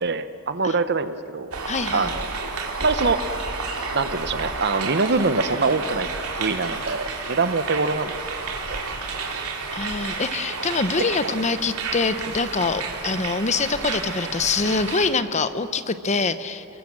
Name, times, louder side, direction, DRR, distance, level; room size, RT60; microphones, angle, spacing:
voice 1, 0.0-1.5 1.9-3.2 3.9-6.1 6.4-8.4 8.7-8.8 11.2-11.3, right 3 dB, 50° right, 12 dB, 0.9 m, -24 dB
sound 1, 1.5-15.1, right 4 dB, 80° right, 3.1 m, -31 dB
voice 2, 1.7-2.1 9.7-16.6, left 4 dB, 30° left, 12 dB, 0.8 m, -24 dB
29.5 x 21.5 x 7.5 m, 2.5 s
head